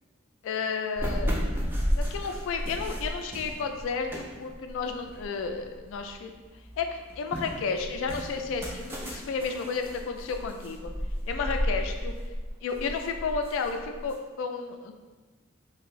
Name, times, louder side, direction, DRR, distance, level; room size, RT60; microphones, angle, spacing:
voice 1, 0.4-1.4 1.9-6.3 6.8-10.9 11.3-12.1 12.6-14.9, left 5 dB, 85° left, 6 dB, 0.3 m, -32 dB
sound 1, 1.0-6.1 6.5-14.1, equal, 10° right, 0.3 m, -33 dB
2.6 x 2.5 x 3.0 m, 1.3 s
head